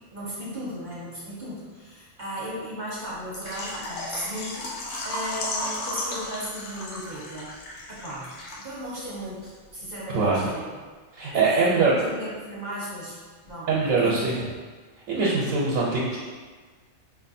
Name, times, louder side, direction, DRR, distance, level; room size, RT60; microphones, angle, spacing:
voice 1, 0.1-7.6 7.9-10.6 11.3-14.2, equal, 40° right, -7 dB, 0.9 m, -36 dB
Water / Liquid, 3.3-9.0 9.2-9.3 9.8-9.9, left 2 dB, 65° left, 0.9 m, -34 dB
voice 2, 10.1-10.5 11.1-11.9 13.7-14.4 15.1-16.2, right 3 dB, 85° right, -5 dB, 1.1 m, -22 dB
5.0 x 2.5 x 2.6 m, 1.4 s
omnidirectional pair, 1.4 m